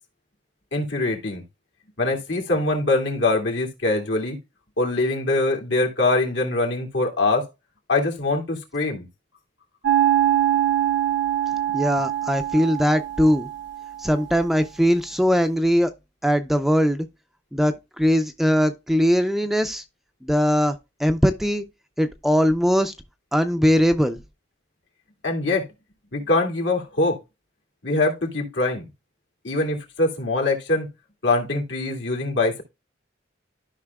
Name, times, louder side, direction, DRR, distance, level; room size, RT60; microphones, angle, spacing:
voice 1, 0.7-1.4 2.0-4.4 4.8-7.5 7.9-9.1 25.2-25.7 26.1-27.2 27.8-28.9 29.4-30.9 31.2-32.6, left 2 dB, 75° left, 2.3 m, -23 dB
sound 1, 9.8-14.1, right 12 dB, 80° right, 0.9 m, -23 dB
voice 2, 11.7-13.5 14.0-15.9 16.2-17.1 17.5-19.8 20.2-21.6 22.0-22.9 23.3-24.2, equal, ahead, 0.4 m, -20 dB
13.0 x 5.4 x 2.3 m
head